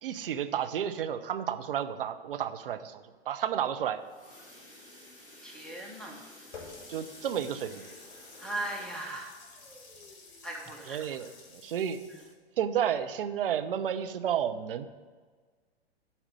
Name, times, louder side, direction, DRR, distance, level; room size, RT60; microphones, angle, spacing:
voice 1, 0.0-4.0 6.9-7.8 10.9-12.0 12.6-14.9, right 9 dB, 55° right, 9 dB, 0.8 m, -31 dB
sound 1, 3.8-12.3 12.7-13.0 13.3-13.4 13.8-13.9, left 1 dB, 20° left, 2.7 m, -54 dB
voice 2, 5.4-6.2 8.4-9.3 10.4-11.3 12.1-12.2, right 2 dB, ahead, -1 dB, 1.4 m, -38 dB
Water tap faucet, 6.5-12.3, left 4 dB, 40° left, 2.1 m, -51 dB
11.5 x 4.4 x 6.7 m, 1.4 s
figure-of-eight pair, 110°, 33 cm